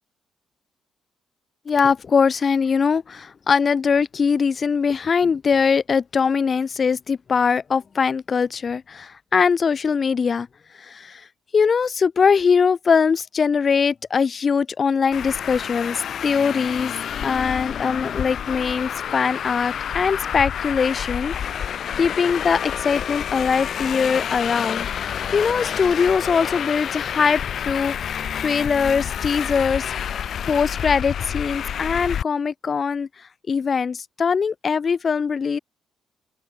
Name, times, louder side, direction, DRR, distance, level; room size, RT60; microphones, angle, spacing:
voice 1, 1.7-10.5 10.8-11.2 11.5-16.9 17.2-29.9 30.5-33.1 33.5-35.6, left 6 dB, 40° left, 0.4 m, -22 dB
Traffic noise roadway noise, 15.1-32.2, left 9 dB, 60° left, 0.8 m, -28 dB
open air
cardioid pair, 90°, 0 cm